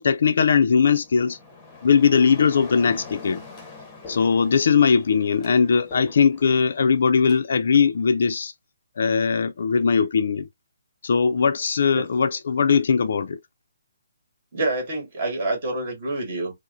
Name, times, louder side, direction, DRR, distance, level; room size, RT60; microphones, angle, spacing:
voice 1, 0.0-1.4 1.8-3.4 4.1-8.5 9.0-10.5 11.0-13.4, left 6 dB, 60° left, 0.4 m, -20 dB
sound 1, 0.8-7.4, left 3 dB, 15° left, 0.8 m, -44 dB
voice 2, 14.5-16.6, right 2 dB, 35° right, 1.9 m, -27 dB
4.7 x 2.0 x 2.6 m
hypercardioid pair, 165°, 0 cm